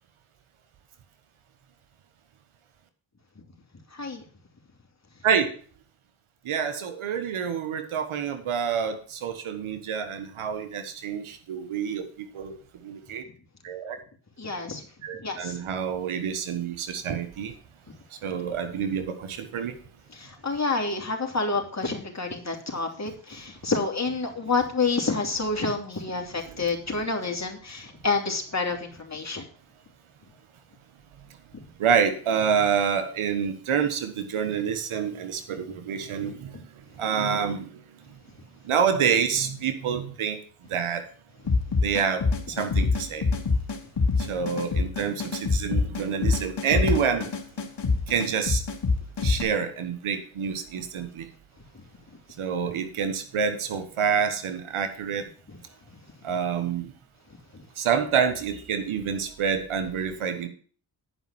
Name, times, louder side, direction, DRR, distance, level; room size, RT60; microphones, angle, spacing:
voice 1, 6.4-12.5 12.8-13.2 13.6-14.0 15.0-17.5 18.2-19.7 26.4-26.6 31.8-36.6 37.0-37.7 38.6-40.4 40.7-41.0 41.8-43.3 44.2-47.3 48.1-48.6 49.2-51.3 52.4-55.3 56.2-56.9 57.8-60.5, right 7 dB, 80° right, 9 dB, 1.5 m, -27 dB
voice 2, 14.4-14.8 15.2-15.6 20.1-29.4, left 3 dB, 35° left, 2 dB, 3.1 m, -28 dB
sound 1, 41.5-49.4, left 4 dB, 55° left, 2.1 m, -25 dB
10.5 x 5.5 x 7.3 m, 0.44 s
supercardioid pair, 45°, 49 cm